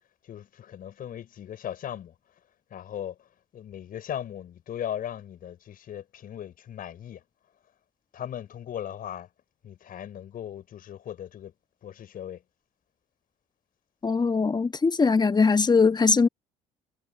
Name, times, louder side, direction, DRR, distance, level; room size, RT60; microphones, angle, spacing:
voice 1, 0.2-2.1 2.7-7.2 8.1-9.3 9.6-11.5 11.8-12.4, left 10 dB, 55° left, 5.7 m, -38 dB
voice 2, 14.0-16.3, left 4 dB, 25° left, 1.5 m, -21 dB
hypercardioid pair, 60°, 18 cm